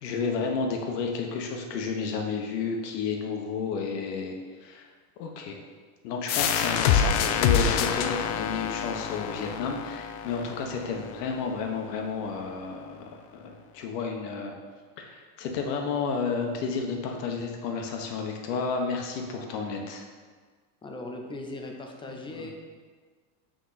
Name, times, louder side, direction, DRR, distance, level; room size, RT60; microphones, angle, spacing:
voice 1, 0.0-4.9 5.2-5.6 6.0-14.6 15.0-20.1 22.0-22.5, left 5 dB, 80° left, 2 dB, 1.3 m, -31 dB
sound 1, 6.3-11.7, left 8 dB, 65° left, 0.7 m, -27 dB
voice 2, 20.8-22.5, left 2 dB, 10° left, 2 dB, 0.4 m, -38 dB
6.3 x 4.5 x 4.1 m, 1.5 s
supercardioid pair, 125°, 47 cm